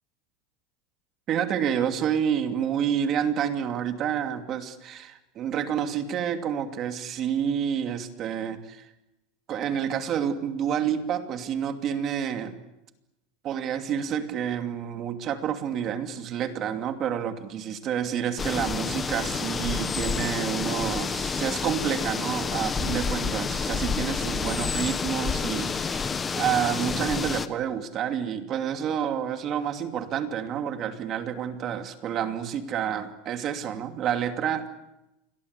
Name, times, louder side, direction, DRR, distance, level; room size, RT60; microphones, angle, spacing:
voice 1, 1.3-8.9 9.5-12.5 13.4-34.8, right 8 dB, 30° right, 7 dB, 2.7 m, -29 dB
sound 1, 18.4-27.5, left 5 dB, 15° left, 1.3 m, -29 dB
28.0 x 22.5 x 8.3 m, 0.93 s
supercardioid pair, 155°, 0 cm